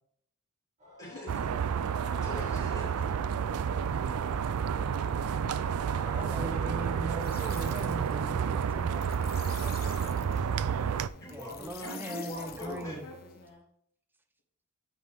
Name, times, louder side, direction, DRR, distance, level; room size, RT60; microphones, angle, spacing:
sound 1, 0.8-11.6, equal, 35° right, 2.4 m, -54 dB
voice 1, 1.0-1.5 1.8-1.9 2.2-3.1 6.0-6.6 11.2-13.1, equal, 15° left, 3.7 m, -43 dB
sound 2, 1.3-11.1, right 7 dB, 80° right, 0.4 m, -30 dB
voice 2, 4.4-5.1 11.8-13.6, left 1 dB, 70° left, 2.3 m, -48 dB
voice 3, 6.1-11.0 11.3-13.1, right 1 dB, 10° right, 0.8 m, -41 dB
sound 3, 7.2-13.5, left 6 dB, 45° left, 1.0 m, -48 dB
9.1 x 6.0 x 3.4 m
head